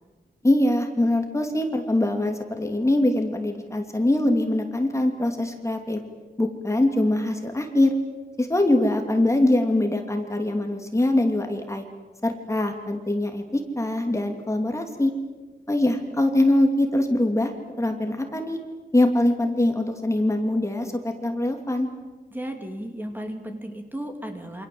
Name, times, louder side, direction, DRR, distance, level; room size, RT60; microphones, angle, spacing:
voice 1, 0.4-6.0 6.4-7.9 8.4-11.8 12.2-15.1 15.7-17.5 17.8-18.6 18.9-21.9, left 1 dB, 15° left, 4 dB, 2.7 m, -23 dB
voice 2, 22.3-24.7, right 1 dB, 10° right, 4 dB, 2.6 m, -34 dB
28.0 x 25.5 x 7.9 m, 1.3 s
wide cardioid pair, 170°, 18 cm